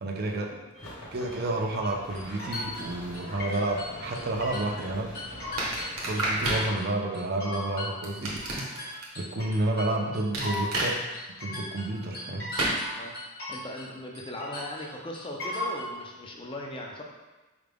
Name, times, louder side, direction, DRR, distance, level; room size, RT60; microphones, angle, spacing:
voice 1, 0.0-0.6 1.1-5.1 6.0-8.3 8.7-10.9 11.4-12.5, right 2 dB, 45° right, 2 dB, 0.5 m, -30 dB
sound 1, 0.7-6.7, equal, 65° left, 1.0 m, -44 dB
sound 2, 1.8-4.9 5.1-6.8 7.1-13.9 14.1-15.9, left 1 dB, 45° left, 1.4 m, -37 dB
sound 3, 5.6-6.7 8.0-9.0 10.3-10.9 12.6-12.8, right 2 dB, 75° right, 0.9 m, -29 dB
voice 2, 13.5-17.0, left 1 dB, 25° left, 0 dB, 0.4 m, -38 dB
4.9 x 2.2 x 3.4 m, 1.2 s
head